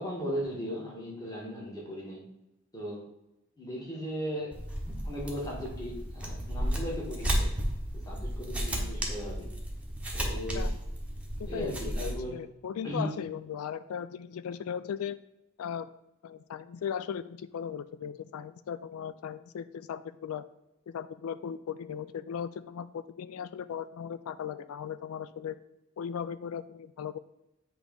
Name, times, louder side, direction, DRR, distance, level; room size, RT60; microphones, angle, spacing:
voice 1, 0.0-2.2 2.7-3.0 3.6-4.5 5.0-7.5 7.9-9.5 10.1-10.7 11.5-12.4 12.8-13.1, equal, 15° left, -4 dB, 1.7 m, -37 dB
sound 1, 4.5-12.1, equal, 5° right, 1.0 m, -33 dB
voice 2, 11.4-15.2 15.6-15.9 16.2-20.4 20.9-25.6 26.0-27.2, left 8 dB, 75° left, 14 dB, 0.3 m, -37 dB
8.0 x 3.1 x 5.2 m, 0.89 s
head